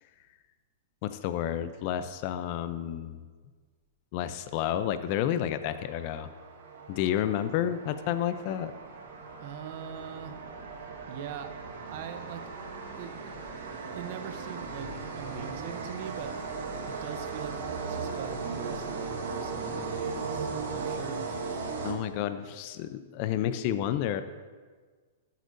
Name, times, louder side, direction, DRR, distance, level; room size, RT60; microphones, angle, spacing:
voice 1, 1.0-3.2 4.1-6.3 6.9-8.7 21.8-24.2, left 11 dB, 45° left, 11 dB, 0.6 m, -30 dB
sound 1, 5.6-22.4, right 4 dB, 75° right, 1.6 m, -37 dB
voice 2, 9.4-10.4 11.1-11.5 11.8-12.5 12.9-13.3 13.9-16.3 16.9-21.3, right 9 dB, 55° right, 8 dB, 0.8 m, -42 dB
14.0 x 8.2 x 2.7 m, 1.5 s
hypercardioid pair, 135°, 0 cm